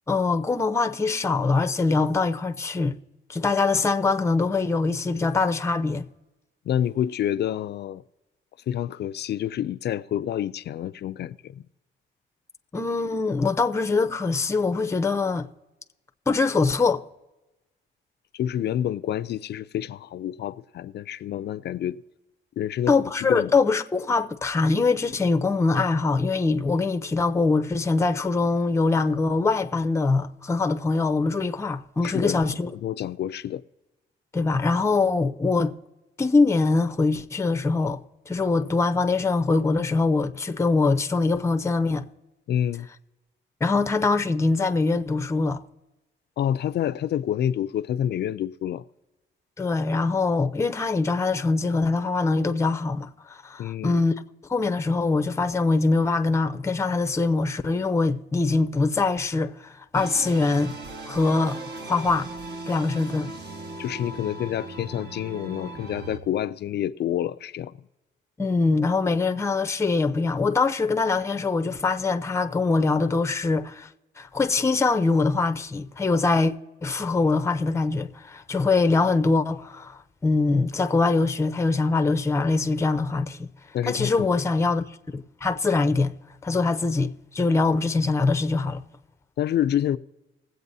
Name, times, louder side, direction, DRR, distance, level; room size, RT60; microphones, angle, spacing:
voice 1, 0.1-3.0 3.3-6.1 12.7-15.5 16.3-17.0 22.9-32.7 34.3-35.8 36.2-42.0 43.6-45.6 49.6-54.1 54.5-60.7 61.1-62.3 62.7-63.3 68.4-73.9 74.2-76.5 76.8-83.5 83.9-84.9 85.1-86.1 86.4-88.8, left 3 dB, 15° left, 0.6 m, -23 dB
voice 2, 6.7-8.0 8.7-11.6 18.3-22.0 22.6-22.9 23.3-23.5 32.0-33.6 42.5-42.9 46.4-48.8 53.6-54.0 63.8-67.7 83.7-84.4 89.4-90.0, left 10 dB, 55° left, 0.4 m, -28 dB
sound 1, 59.9-66.2, right 2 dB, 55° right, 1.6 m, -38 dB
20.5 x 7.9 x 2.7 m
cardioid pair, 90°, 20 cm